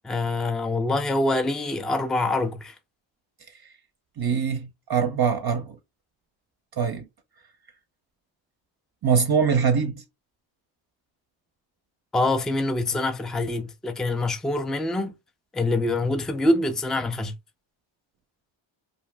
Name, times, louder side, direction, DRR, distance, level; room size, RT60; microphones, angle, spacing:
voice 1, 0.0-2.8 12.1-15.2 15.5-17.3, left 2 dB, ahead, 0.4 m, -25 dB
voice 2, 4.2-5.8 6.8-7.1 9.0-10.0, right 6 dB, 50° right, 0.6 m, -23 dB
2.6 x 2.0 x 3.2 m
cardioid pair, 55°, 49 cm